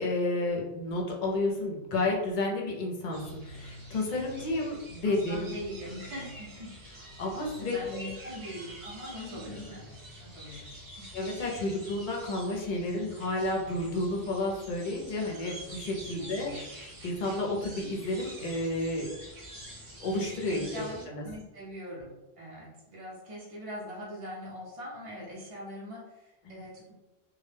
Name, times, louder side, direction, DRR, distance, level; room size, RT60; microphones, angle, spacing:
voice 1, 0.0-5.5 7.2-7.8 9.2-9.7 11.1-19.1 20.0-20.6 21.1-21.2 26.5-26.6, left 2 dB, 55° left, -1 dB, 0.7 m, -31 dB
sound 1, 3.1-21.0, equal, 60° right, 1.0 m, -46 dB
voice 2, 5.0-6.7 7.6-9.9 10.2-11.1 16.2-16.6 17.0-17.1 20.5-26.9, equal, 40° right, -6 dB, 0.6 m, -42 dB
2.1 x 2.1 x 3.2 m, 1.0 s
omnidirectional pair, 1.0 m